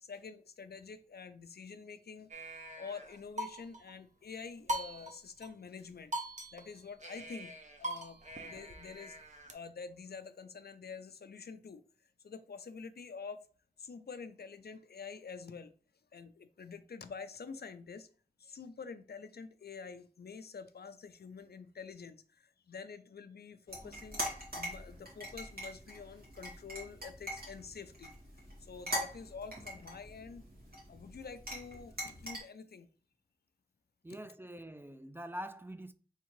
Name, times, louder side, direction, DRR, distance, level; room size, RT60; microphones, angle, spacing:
voice 1, 0.0-2.3 2.8-6.2 6.5-9.2 9.5-11.8 12.2-13.4 13.8-15.7 16.1-18.1 18.4-24.2 24.5-28.1 28.6-30.4 30.9-32.9, left 5 dB, 85° left, 0.4 m, -47 dB
sound 1, 2.3-3.9 4.7-5.5 5.8-5.9 6.1-9.5, right 1 dB, 50° right, 0.8 m, -42 dB
sound 2, 23.7-32.4, equal, 75° right, 1.9 m, -43 dB
voice 2, 34.0-35.9, equal, 15° right, 0.3 m, -44 dB
4.3 x 3.7 x 3.1 m
wide cardioid pair, 55°, 16 cm